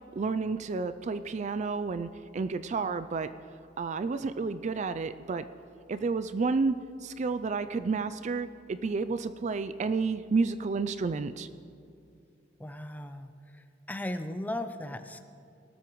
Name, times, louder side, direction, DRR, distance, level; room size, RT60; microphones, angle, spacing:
voice 1, 0.2-3.3 3.8-5.4 5.9-6.7 7.0-11.5, right 4 dB, 40° right, 12 dB, 0.3 m, -30 dB
voice 2, 12.6-15.3, left 1 dB, 10° left, 8 dB, 0.6 m, -37 dB
19.0 x 13.0 x 3.1 m, 2.6 s
head